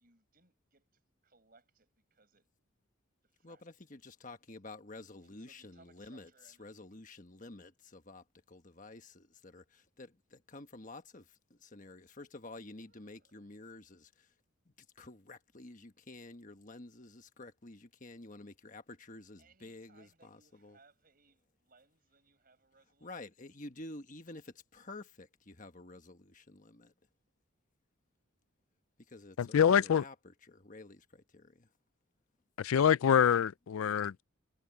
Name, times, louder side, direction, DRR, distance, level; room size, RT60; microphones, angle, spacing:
voice 1, 0.0-2.5 3.2-3.9 5.2-6.9 12.9-13.3 19.4-23.2, right 3 dB, 45° right, 6.8 m, -67 dB
voice 2, 3.4-14.3 14.8-20.8 23.0-26.9 29.1-31.7, left 2 dB, 40° left, 1.3 m, -50 dB
voice 3, 29.4-30.0 32.6-34.2, left 8 dB, 85° left, 0.4 m, -26 dB
head